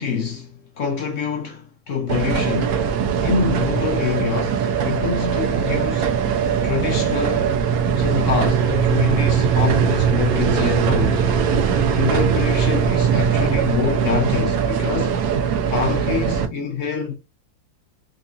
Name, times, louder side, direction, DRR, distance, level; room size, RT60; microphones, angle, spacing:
voice 1, 0.0-2.8 3.2-6.2 6.6-7.5 8.0-11.3 11.9-15.3 15.7-17.1, left 6 dB, 60° left, 0.8 m, -25 dB
sound 1, 2.1-16.5, right 7 dB, 70° right, 0.9 m, -20 dB
3.9 x 2.8 x 2.4 m
omnidirectional pair, 2.1 m